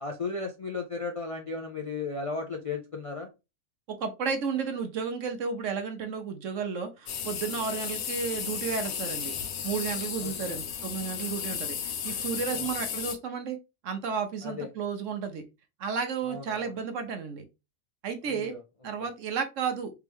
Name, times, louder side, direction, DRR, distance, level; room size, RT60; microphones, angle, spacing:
voice 1, 0.0-3.3 10.2-10.6 12.5-12.7 14.4-14.7 16.3-16.7 18.2-18.6 19.0-19.1, left 4 dB, 45° left, 0.4 m, -35 dB
voice 2, 3.9-9.3 9.6-13.6 13.8-15.4 15.8-17.4 18.0-18.5 18.8-19.9, right 6 dB, 65° right, 1.1 m, -32 dB
sound 1, 7.1-13.1, left 8 dB, 85° left, 1.2 m, -34 dB
3.4 x 3.2 x 3.4 m
omnidirectional pair, 1.5 m